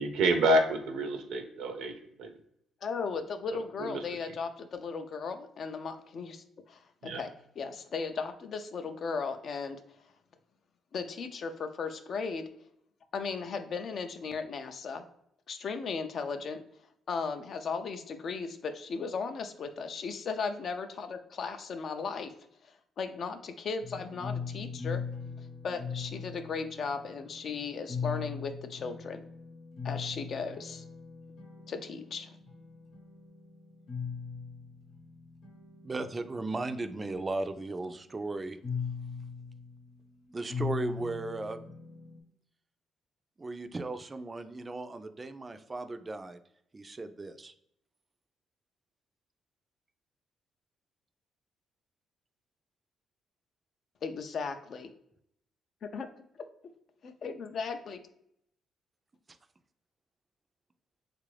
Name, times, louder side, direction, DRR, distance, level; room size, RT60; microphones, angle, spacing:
voice 1, 0.0-1.9 2.2-2.3 3.8-3.9 7.0-7.2, right 1 dB, 80° right, 6 dB, 0.5 m, -27 dB
voice 2, 2.8-7.3 7.6-9.8 10.9-12.4 13.1-15.0 15.5-16.6 17.1-22.3 23.0-25.0 25.4-29.2 29.8-30.8 31.7-32.3 54.0-54.9 55.9-56.1 57.0-58.0, left 5 dB, 55° left, 8 dB, 0.4 m, -36 dB
sound 1, 23.8-42.2, left 6 dB, 80° left, 0.9 m, -41 dB
voice 3, 35.8-38.6 40.3-41.6 43.4-46.4 46.7-47.5, right 2 dB, 25° right, 9 dB, 0.3 m, -36 dB
3.3 x 2.5 x 3.2 m, 0.75 s
cardioid pair, 90°, 0 cm